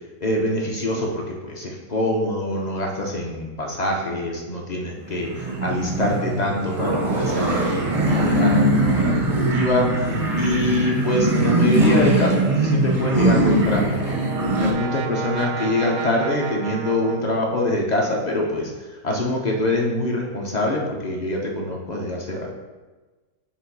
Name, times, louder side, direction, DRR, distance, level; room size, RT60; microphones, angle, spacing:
voice 1, 0.2-9.2 9.5-10.1 10.4-14.2 14.6-18.7 19.0-22.5, left 1 dB, 50° left, -1 dB, 0.5 m, -24 dB
sound 1, 5.1-14.7, right 1 dB, 45° right, 0.4 m, -21 dB
Brass instrument, 13.4-18.2, right 7 dB, 70° right, 0.8 m, -33 dB
7.3 x 2.6 x 5.3 m, 1.2 s
omnidirectional pair, 1.8 m